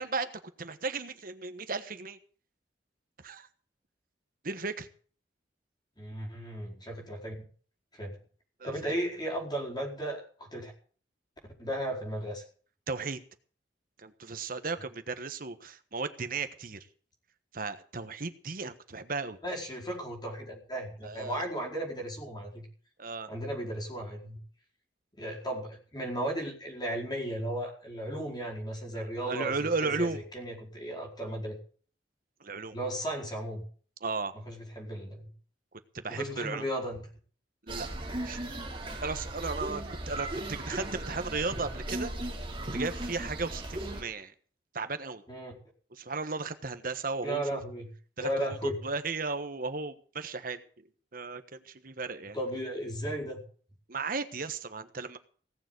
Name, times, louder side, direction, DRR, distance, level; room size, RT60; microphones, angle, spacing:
voice 1, 0.0-2.2 3.2-3.5 4.4-4.9 8.6-9.0 12.9-13.2 14.0-16.8 17.5-19.4 21.0-21.4 23.0-23.3 28.9-30.2 32.4-32.8 34.0-34.3 35.9-36.6 37.6-37.9 38.2-38.4 39.0-42.1 42.7-44.3 44.7-45.2 45.9-47.4 48.2-48.6 48.8-50.6 51.1-52.4 53.9-55.2, right 4 dB, 50° right, 10 dB, 1.3 m, -35 dB
voice 2, 6.0-7.3 7.9-8.2 8.6-10.7 11.6-12.4 19.4-22.7 23.3-24.4 25.2-31.6 32.7-33.6 34.3-35.3 36.1-37.0 45.3-45.5 47.2-47.9 48.2-48.8 52.3-53.4, right 1 dB, 25° left, 0 dB, 4.6 m, -35 dB
sound 1, 37.7-44.0, right 1 dB, 30° right, 2.9 m, -37 dB
17.5 x 7.1 x 7.9 m, 0.44 s
head